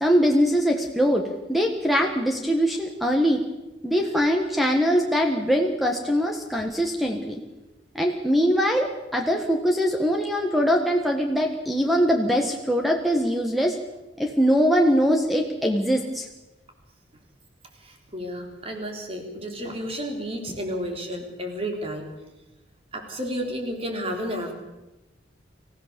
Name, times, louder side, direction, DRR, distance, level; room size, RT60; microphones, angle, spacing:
voice 1, 0.0-3.4 3.8-7.4 7.9-13.8 14.2-16.3, equal, ahead, 2 dB, 1.6 m, -22 dB
voice 2, 17.8-22.1 22.9-24.5, equal, 30° right, 2 dB, 3.8 m, -32 dB
25.5 x 16.0 x 6.9 m, 1.0 s
head